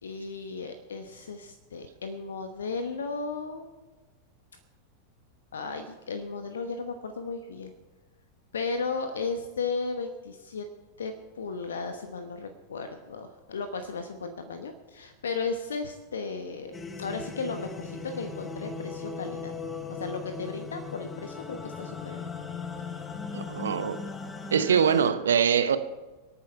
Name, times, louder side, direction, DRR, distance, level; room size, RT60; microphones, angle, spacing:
voice 1, 0.0-3.7 5.5-7.7 8.5-10.7 11.0-19.5 19.9-22.3, left 4 dB, 65° left, 8 dB, 1.1 m, -35 dB
sound 1, 16.7-25.1, left 5 dB, 15° left, 1.2 m, -38 dB
voice 2, 23.3-24.1 24.5-25.8, right 7 dB, 65° right, 12 dB, 0.8 m, -23 dB
25.5 x 9.1 x 4.5 m, 1.2 s
figure-of-eight pair, 90°, 0 cm